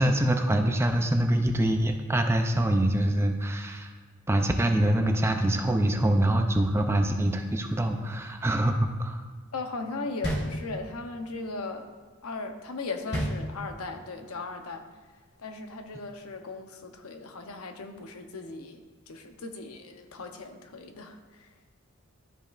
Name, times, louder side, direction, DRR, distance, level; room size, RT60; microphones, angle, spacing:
voice 1, 0.0-3.9 4.3-9.2, right 1 dB, 10° right, 5 dB, 0.4 m, -25 dB
voice 2, 9.5-11.9 12.2-14.9 15.4-21.5, left 3 dB, 85° left, 6 dB, 0.7 m, -38 dB
sound 1, 10.2-11.1 13.1-14.0, equal, 50° left, 1.5 m, -31 dB
12.5 x 5.2 x 2.4 m, 1.4 s
head